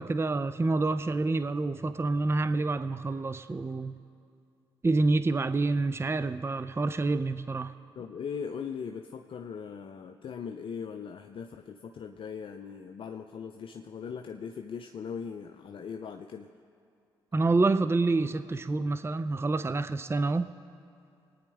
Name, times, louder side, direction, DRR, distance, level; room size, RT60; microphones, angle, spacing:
voice 1, 0.0-4.0 4.8-7.7 17.3-20.5, right 3 dB, 25° right, 12 dB, 0.5 m, -27 dB
voice 2, 8.0-16.5, left 6 dB, 55° left, 6 dB, 0.6 m, -39 dB
25.0 x 9.6 x 3.5 m, 2.4 s
hypercardioid pair, 40°, 11 cm